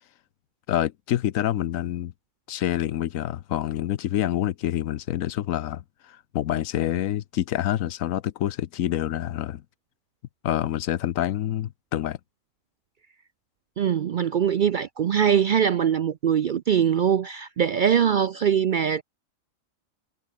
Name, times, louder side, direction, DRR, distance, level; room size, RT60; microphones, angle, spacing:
voice 1, 0.7-2.1 2.5-9.6 10.4-12.2, left 12 dB, 90° left, 1.1 m, -27 dB
voice 2, 13.8-19.0, right 8 dB, 60° right, 0.5 m, -22 dB
omnidirectional pair, 1.4 m